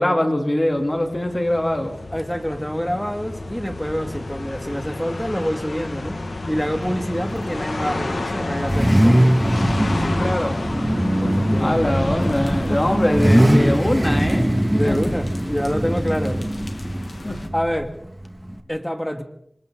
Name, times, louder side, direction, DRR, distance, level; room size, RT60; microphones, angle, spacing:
voice 1, 0.0-1.9 10.0-10.6 11.6-14.5 14.8-15.0 17.2-17.4, left 1 dB, 30° left, 4 dB, 3.2 m, -22 dB
sound 1, 0.6-13.7, left 2 dB, 80° left, 2.1 m, -30 dB
voice 2, 2.1-6.2 6.5-9.2 11.2-11.8 12.5-12.8 14.7-16.4 17.5-17.9 18.7-19.2, equal, 5° left, 7 dB, 2.3 m, -26 dB
Car / Idling / Accelerating revving vroom, 6.5-18.6, right 1 dB, 15° right, 2.2 m, -21 dB
sound 2, 12.2-17.5, left 2 dB, 60° left, 2.5 m, -39 dB
27.5 x 24.5 x 4.0 m, 0.70 s
wide cardioid pair, 55°, 0 cm